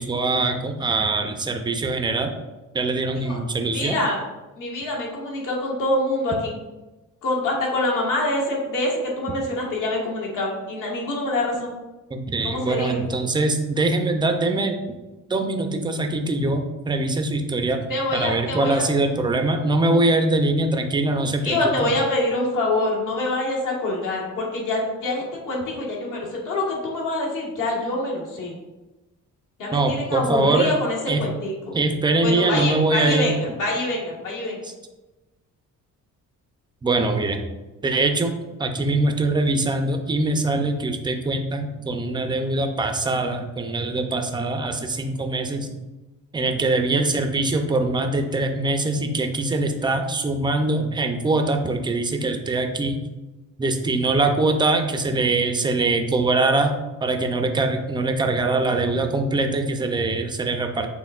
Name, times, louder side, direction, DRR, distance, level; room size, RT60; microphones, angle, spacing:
voice 1, 0.0-2.3 2.7-4.0 12.1-14.8 15.3-21.9 29.7-30.7 31.1-31.2 31.7-33.3 34.6-34.7 36.8-37.4 37.8-38.3 38.6-45.7 46.3-53.0 53.6-56.7 57.0-60.9, right 2 dB, 15° right, 5 dB, 0.3 m, -23 dB
voice 2, 3.7-4.2 4.6-6.6 7.2-11.8 12.4-13.0 17.9-18.8 21.4-28.5 29.6-31.8 32.2-34.6, left 2 dB, 70° left, -3 dB, 1.4 m, -25 dB
6.4 x 3.4 x 2.3 m, 1.1 s
cardioid pair, 155°, 33 cm